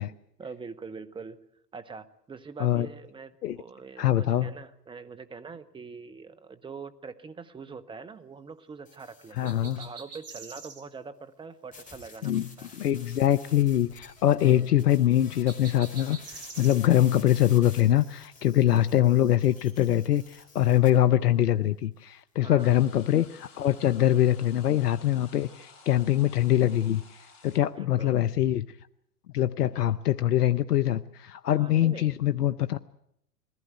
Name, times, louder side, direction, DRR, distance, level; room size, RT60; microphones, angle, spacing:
voice 1, 0.0-1.4 1.7-12.3 12.6-12.7 14.4-14.7 22.4-22.8 27.7-28.2 31.6-32.2, right 5 dB, 10° right, 11 dB, 1.0 m, -44 dB
voice 2, 4.0-4.5 9.4-9.9 12.2-28.7 29.3-32.8, left 12 dB, 75° left, 14 dB, 0.7 m, -23 dB
sound 1, 8.9-9.9 11.7-20.9, left 4 dB, 15° left, 4.9 m, -50 dB
sound 2, 9.4-10.8 15.5-16.8, right 5 dB, 30° right, 3.2 m, -44 dB
sound 3, 22.6-27.6, left 4 dB, 40° left, 5.0 m, -54 dB
21.0 x 15.5 x 9.3 m, 0.74 s
hypercardioid pair, 100°, 47 cm